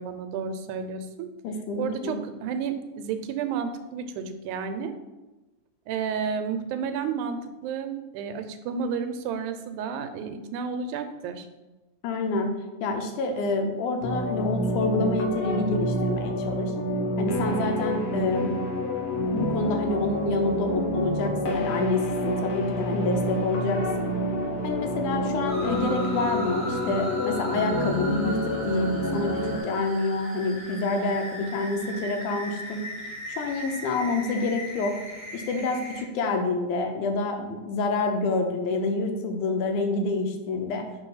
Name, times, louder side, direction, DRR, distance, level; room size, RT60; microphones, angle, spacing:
voice 1, 0.0-1.3 1.8-4.9 5.9-11.5, right 6 dB, 90° right, 9 dB, 2.0 m, -31 dB
voice 2, 1.4-2.2 12.0-12.5 12.8-16.7 17.2-18.6 19.3-24.1 24.6-32.8 33.3-35.0 35.3-40.9, left 3 dB, 90° left, 5 dB, 2.2 m, -27 dB
sound 1, 14.0-29.6, equal, 70° left, 1.7 m, -28 dB
sound 2, 25.5-36.0, equal, 20° left, 0.6 m, -38 dB
5.9 x 3.2 x 5.5 m, 1.1 s
omnidirectional pair, 3.4 m